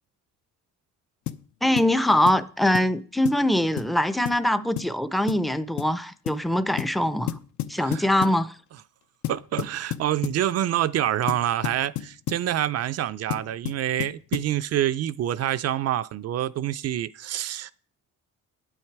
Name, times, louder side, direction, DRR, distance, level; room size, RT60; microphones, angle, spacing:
sound 1, 1.3-1.5 1.8-1.9 2.3-2.5 2.7-2.9 3.3-3.5 3.8-3.9 4.3-4.4 4.8-5.0 5.3-5.5 5.8-6.0 6.3-6.4 6.8-7.0 7.3-8.4 9.2-10.4 11.3-12.5 13.3-14.6, left 13 dB, 65° left, 0.6 m, -32 dB
voice 1, 1.6-7.4 7.7-8.5, left 1 dB, ahead, 0.5 m, -23 dB
voice 2, 9.3-17.7, right 12 dB, 50° right, 0.5 m, -27 dB
9.0 x 8.6 x 4.6 m
cardioid pair, 125°, 32 cm